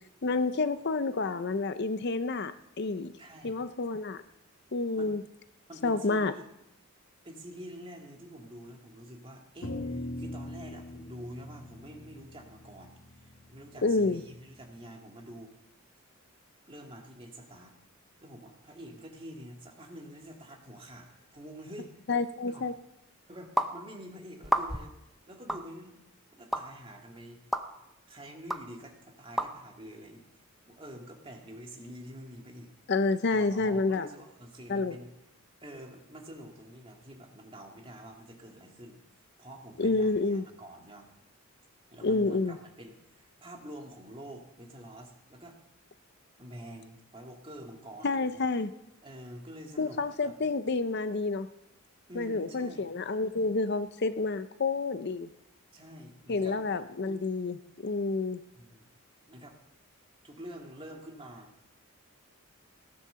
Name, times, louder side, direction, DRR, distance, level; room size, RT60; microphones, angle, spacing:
voice 1, 0.2-2.5 2.8-3.1 3.4-4.2 4.7-5.2 5.8-6.3 13.8-14.2 22.1-22.7 32.9-34.1 34.7-35.0 39.8-40.5 42.0-42.6 48.0-48.7 49.8-51.5 52.2-55.3 56.3-58.4, left 3 dB, 50° left, 11 dB, 0.6 m, -29 dB
voice 2, 3.2-3.6 4.9-5.1 5.7-6.4 7.2-15.5 16.7-17.8 18.2-22.0 22.5-22.7 23.3-25.0 25.3-26.0 26.3-27.4 28.1-30.2 30.7-32.7 33.3-35.1 35.6-39.0 39.4-41.1 41.9-45.7 46.4-48.4 49.0-50.3 52.1-52.9 55.7-56.6 58.6-58.9 59.3-59.6 60.2-61.5, equal, 25° right, 1 dB, 2.3 m, -47 dB
sound 1, 9.6-14.1, left 1 dB, 70° left, 1.8 m, -41 dB
sound 2, 23.6-23.7 24.4-24.9 25.5-25.6 26.5-26.6 27.5-27.6 28.5-28.6 29.4-29.5, equal, ahead, 0.6 m, -29 dB
17.0 x 10.5 x 6.9 m, 0.85 s
head